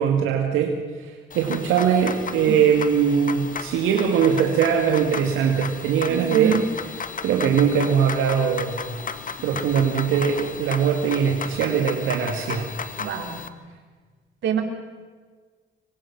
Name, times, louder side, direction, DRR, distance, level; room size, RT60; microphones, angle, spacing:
voice 1, 0.0-6.6 7.2-8.8 9.4-12.7, right 7 dB, 90° right, 2 dB, 2.2 m, -21 dB
sound 1, 1.3-13.5, left 6 dB, 45° left, 1.8 m, -34 dB
voice 2, 6.1-6.7 13.0-13.5 14.4-14.6, right 7 dB, 70° right, 4 dB, 3.8 m, -25 dB
26.5 x 23.0 x 6.1 m, 1.5 s
cardioid pair, 90°, 20 cm